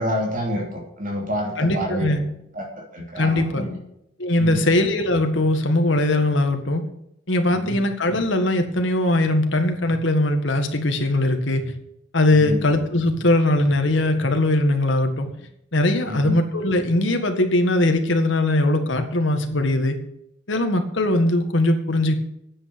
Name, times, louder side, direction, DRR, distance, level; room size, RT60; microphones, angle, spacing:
voice 1, 0.0-2.1 2.5-2.7 2.9-3.8 4.4-4.6 7.6-7.8 12.3-12.6 16.1-16.4, equal, 45° right, 1 dB, 3.0 m, -28 dB
voice 2, 1.6-2.2 3.2-3.7 4.2-6.8 7.3-11.6 12.1-15.3 15.7-20.0 20.5-22.1, left 1 dB, 65° left, 6 dB, 1.9 m, -20 dB
10.0 x 8.2 x 6.9 m, 0.77 s
head